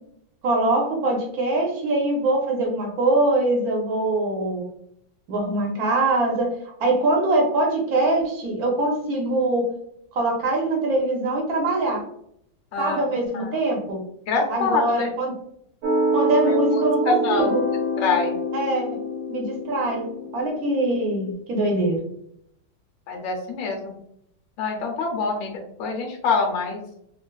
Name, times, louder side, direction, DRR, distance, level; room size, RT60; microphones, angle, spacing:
voice 1, 0.4-4.6 5.3-6.5 6.8-9.7 10.1-12.0 12.8-14.0 14.5-15.3 16.1-17.6 18.5-18.9 19.3-20.1 20.3-22.0, right 2 dB, 60° right, 0 dB, 1.0 m, -23 dB
voice 2, 12.7-13.1 13.3-13.5 14.3-15.1 16.5-17.5 18.0-18.4 23.1-24.0 24.6-26.8, left 4 dB, 75° left, 1 dB, 1.4 m, -25 dB
sound 1, 15.8-21.3, right 1 dB, 75° right, 1.4 m, -26 dB
3.7 x 2.4 x 2.2 m, 0.72 s
omnidirectional pair, 2.2 m